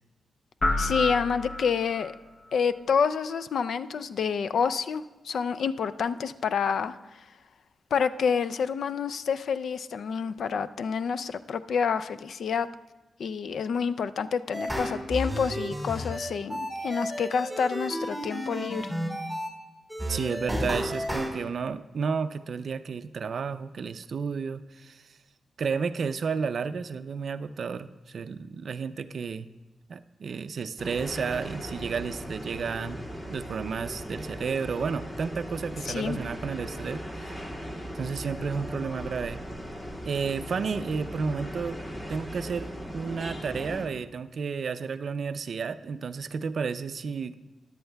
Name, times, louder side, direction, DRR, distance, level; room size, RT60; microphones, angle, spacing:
sound 1, 0.6-2.2, left 2 dB, 45° left, 0.9 m, -29 dB
voice 1, 0.8-2.1 2.5-7.0 7.9-12.7 13.2-18.9 35.8-36.2, left 6 dB, 75° left, 13 dB, 0.3 m, -28 dB
sound 2, 14.5-19.5 19.9-21.3, equal, 5° left, 2.9 m, -32 dB
voice 2, 20.0-25.0 25.6-29.5 29.9-37.0 37.9-39.4 40.0-41.8 42.1-47.3, right 5 dB, 65° right, 12 dB, 0.4 m, -32 dB
sound 3, 30.8-43.9, equal, 30° left, 2.1 m, -38 dB
13.5 x 10.5 x 2.2 m, 1.2 s
cardioid pair, 70°, 0 cm